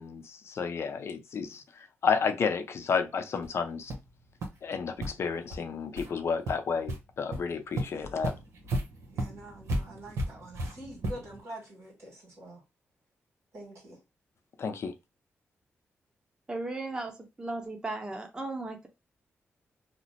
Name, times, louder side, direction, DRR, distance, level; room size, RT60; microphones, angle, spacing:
voice 1, 0.0-1.6 2.0-3.9 4.6-8.3 14.6-14.9, left 5 dB, 65° left, 0.6 m, -31 dB
sound 1, 3.4-3.5 3.9-4.1 4.4-4.5 5.0-5.1 5.5-5.6 6.0-6.1 6.5-7.0 7.3-7.4 7.8-11.4, right 1 dB, 90° right, 0.9 m, -34 dB
voice 2, 9.1-12.6 13.5-14.0, right 1 dB, 75° right, 1.7 m, -46 dB
voice 3, 16.5-18.9, right 2 dB, 20° right, 0.9 m, -36 dB
2.9 x 2.1 x 4.1 m
cardioid pair, 90°, 5 cm